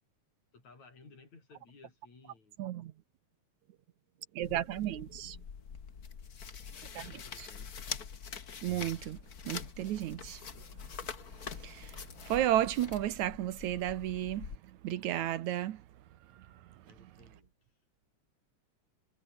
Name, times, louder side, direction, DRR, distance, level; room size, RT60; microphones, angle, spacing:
voice 1, 0.5-2.6 4.6-4.7 6.8-7.8 16.8-17.5, left 3 dB, 65° left, 8.6 m, -58 dB
voice 2, 2.6-2.9 4.4-5.4 8.6-9.2 9.5-10.4 11.6-11.9 12.3-14.5 14.8-15.8, right 12 dB, 75° right, 2.3 m, -32 dB
sound 1, 4.4-14.6, left 6 dB, 40° left, 1.6 m, -45 dB
omnidirectional pair, 3.5 m